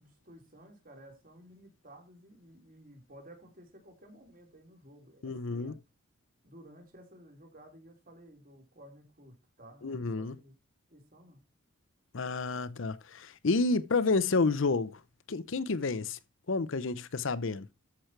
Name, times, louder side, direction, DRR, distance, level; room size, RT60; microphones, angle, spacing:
voice 1, 0.0-5.8 6.4-10.5 10.9-11.4, right 1 dB, 40° right, 3.8 m, -54 dB
voice 2, 5.2-5.7 9.8-10.4 12.1-15.0 15.3-16.2 16.5-17.7, left 3 dB, 65° left, 0.7 m, -30 dB
13.5 x 6.2 x 4.5 m
head